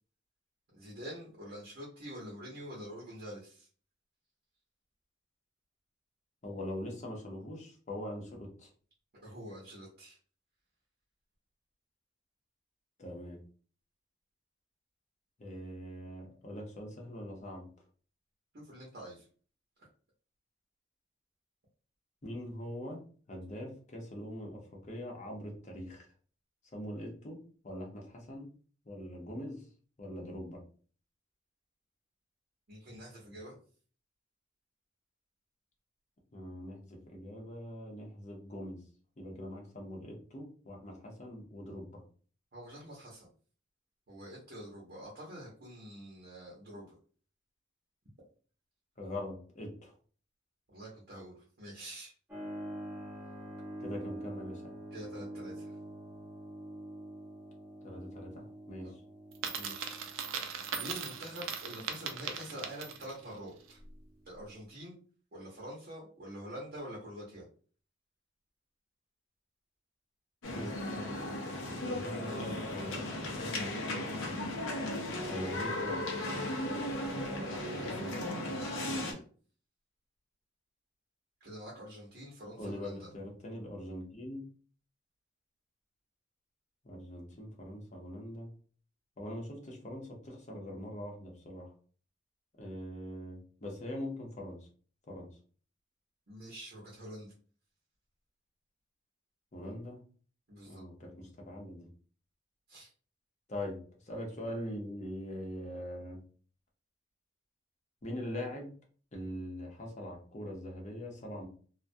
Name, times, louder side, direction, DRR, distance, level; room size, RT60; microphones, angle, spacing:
voice 1, 0.7-3.7 9.2-10.2 18.5-19.3 19.8-19.9 32.7-33.6 42.5-43.3 44.1-46.9 50.7-52.1 54.9-55.8 58.8-58.9 59.5-60.2 60.7-63.8 64.3-65.0 65.3-67.5 77.5-78.2 78.7-79.2 81.4-83.1 96.3-97.3 100.5-100.8 102.7-102.9, equal, 55° right, -4 dB, 0.7 m, -46 dB
voice 2, 6.4-8.7 13.0-13.4 15.4-17.7 22.2-23.0 23.3-26.1 26.7-28.5 28.8-29.7 30.0-30.6 36.3-38.8 39.2-42.0 49.0-50.0 53.8-54.7 57.8-59.0 70.5-73.1 75.3-76.0 82.6-84.5 86.8-88.5 89.2-91.7 92.6-94.7 95.1-95.3 99.5-100.0 100.7-101.9 103.5-106.2 108.0-108.7 109.1-111.5, left 1 dB, 40° left, 0 dB, 0.7 m, -42 dB
Keyboard (musical), 52.3-64.7, right 1 dB, 10° right, 0.8 m, -47 dB
Coin (dropping), 59.3-63.2, right 7 dB, 90° right, 0.4 m, -39 dB
sound 1, 70.4-79.1, left 1 dB, 85° left, 0.6 m, -36 dB
2.2 x 2.1 x 2.6 m, 0.43 s
head